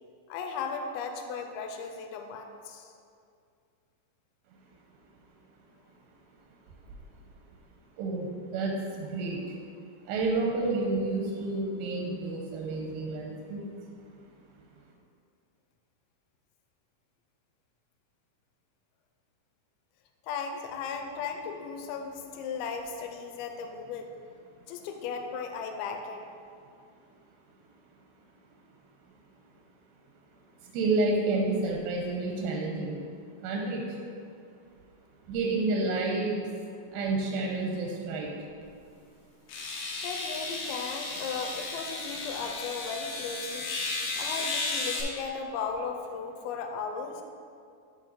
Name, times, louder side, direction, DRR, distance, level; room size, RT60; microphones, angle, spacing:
voice 1, 0.3-2.9 20.2-24.1 24.7-26.2 40.0-43.7 44.2-47.2, left 5 dB, 90° left, 4 dB, 2.5 m, -36 dB
voice 2, 8.0-9.4 10.1-13.6 30.6-33.0 33.4-34.0 35.3-36.4 36.9-38.3, right 3 dB, 85° right, -1 dB, 2.5 m, -30 dB
sound 1, 38.6-38.7 39.5-45.0, left 3 dB, 70° left, 1.9 m, -34 dB
7.7 x 3.7 x 5.2 m, 2.3 s
omnidirectional pair, 4.3 m